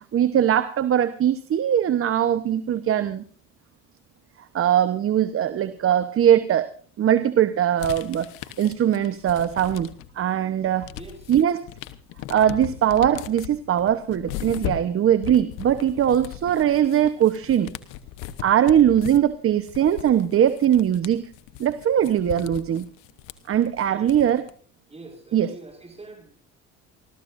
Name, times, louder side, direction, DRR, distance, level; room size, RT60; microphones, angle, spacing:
voice 1, 0.1-3.2 4.5-6.7 7.0-8.3 8.6-9.9 10.2-10.9 11.3-11.6 12.3-17.7 18.4-21.3 21.6-22.9 23.5-24.4 25.3-25.5, right 10 dB, 45° right, 11 dB, 1.0 m, -21 dB
sound 1, 7.8-10.2 10.6-24.5, left 11 dB, 85° left, 1.1 m, -38 dB
voice 2, 10.9-11.3 23.9-24.1 24.9-26.3, right 3 dB, 20° right, 2 dB, 5.0 m, -44 dB
29.0 x 13.5 x 2.6 m, 0.43 s
supercardioid pair, 95°, 30 cm